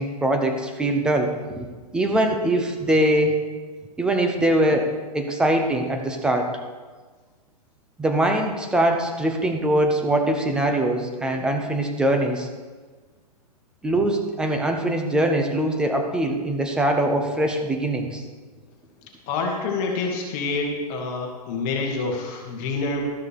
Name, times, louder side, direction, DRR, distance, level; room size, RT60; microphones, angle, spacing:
voice 1, 0.0-1.7 1.9-3.4 4.0-6.6 8.0-12.5 13.8-18.2, right 1 dB, 5° right, 4 dB, 0.8 m, -22 dB
voice 2, 19.3-23.1, left 3 dB, 30° left, 1 dB, 1.8 m, -27 dB
13.0 x 6.2 x 6.8 m, 1.4 s
hypercardioid pair, 160°, 21 cm